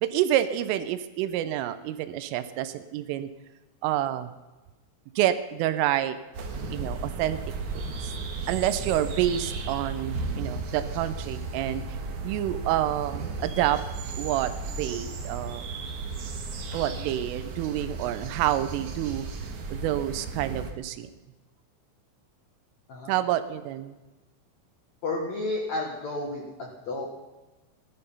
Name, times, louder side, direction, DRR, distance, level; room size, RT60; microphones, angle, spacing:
voice 1, 0.0-3.3 3.8-4.3 5.2-6.2 6.7-7.4 7.7-7.8 8.5-11.8 12.2-13.8 14.2-15.6 16.7-19.3 19.7-21.1 23.1-23.9, right 12 dB, 80° right, 12 dB, 3.2 m, -28 dB
sound 1, 6.3-20.7, right 4 dB, 65° right, 2.0 m, -35 dB
voice 2, 25.0-27.3, left 2 dB, 70° left, 0 dB, 1.7 m, -32 dB
18.0 x 12.0 x 5.6 m, 1.1 s
omnidirectional pair, 5.9 m